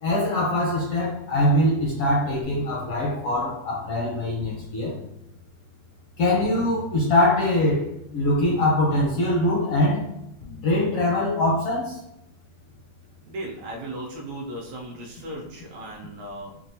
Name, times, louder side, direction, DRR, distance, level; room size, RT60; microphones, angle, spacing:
voice 1, 0.0-5.0 6.2-10.1 10.6-12.0, left 1 dB, 70° left, -4 dB, 1.4 m, -23 dB
sound 1, 2.4-3.6 4.4-5.6 6.4-7.6 8.4-9.6 10.4-11.6, left 4 dB, 90° left, 2.3 m, -44 dB
voice 2, 13.3-16.6, right 1 dB, 75° right, -1 dB, 1.8 m, -36 dB
5.9 x 2.3 x 2.7 m, 0.82 s
omnidirectional pair, 3.3 m